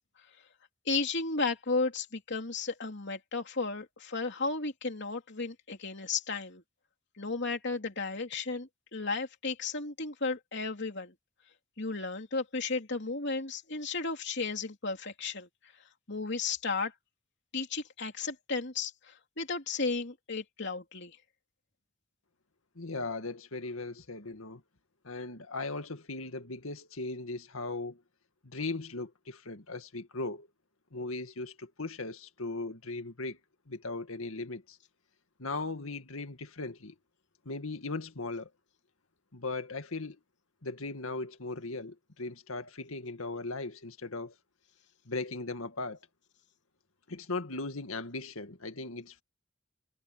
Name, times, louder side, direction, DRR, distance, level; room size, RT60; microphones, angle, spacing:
voice 1, 0.8-6.6 7.2-11.1 11.8-15.5 16.1-16.9 17.5-21.2, left 4 dB, 60° left, 3.1 m, -34 dB
voice 2, 22.8-24.6 25.0-28.0 28.4-30.5 30.9-33.4 33.7-34.8 35.4-36.9 37.5-38.5 39.3-40.2 40.6-44.4 45.1-46.0 47.1-49.2, left 3 dB, 90° left, 2.0 m, -38 dB
head